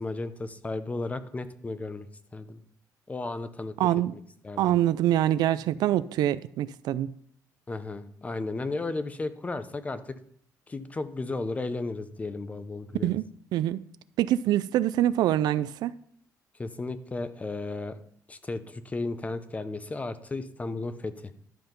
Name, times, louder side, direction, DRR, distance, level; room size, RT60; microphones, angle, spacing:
voice 1, 0.0-2.1 2.3-2.6 3.1-3.8 4.4-4.8 7.7-10.2 10.7-13.2 16.6-18.0 18.3-21.1, left 3 dB, 20° left, 0.7 m, -34 dB
voice 2, 3.8-4.1 4.6-7.1 13.0-13.2 13.5-13.8 14.2-15.9, right 12 dB, 80° right, 0.4 m, -25 dB
12.5 x 5.8 x 5.3 m
cardioid pair, 115°, 7 cm